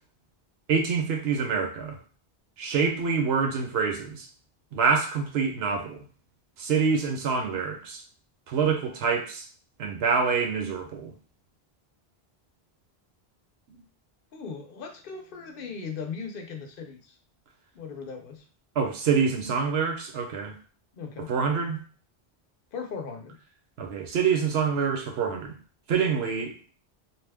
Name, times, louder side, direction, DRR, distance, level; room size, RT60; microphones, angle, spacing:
voice 1, 0.7-2.0 2.6-4.3 4.7-6.0 6.6-8.0 8.5-9.4 9.8-11.1 13.7-13.8 18.8-20.5 21.3-21.8 23.8-25.6 25.9-26.5, right 5 dB, 80° right, 3 dB, 0.9 m, -26 dB
voice 2, 14.3-17.2 17.7-18.4 20.9-21.3 22.7-23.4, left 5 dB, 65° left, 4 dB, 0.7 m, -38 dB
2.8 x 2.2 x 3.4 m, 0.39 s
omnidirectional pair, 1.0 m